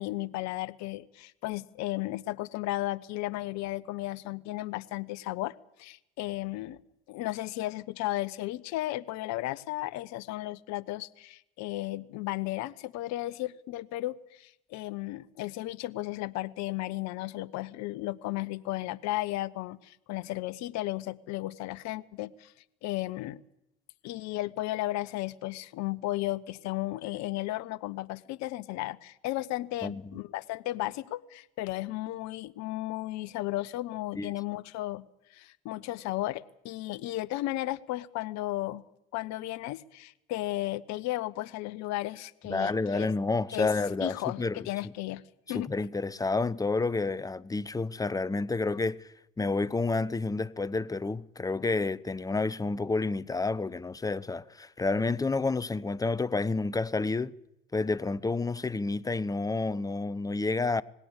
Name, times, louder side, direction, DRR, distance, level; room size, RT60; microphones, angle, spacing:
voice 1, 0.0-5.5 5.8-6.8 7.1-22.5 22.8-23.4 24.0-35.0 35.3-38.8 39.1-43.1 43.5-43.7 44.0-45.2 45.5-45.7, left 17 dB, 60° left, 1.0 m, -34 dB
voice 2, 29.8-30.2 34.1-34.3 42.5-44.6 45.5-49.1 49.4-57.3 57.7-60.8, left 3 dB, 10° left, 0.8 m, -29 dB
20.0 x 17.0 x 8.2 m
hypercardioid pair, 70°, 31 cm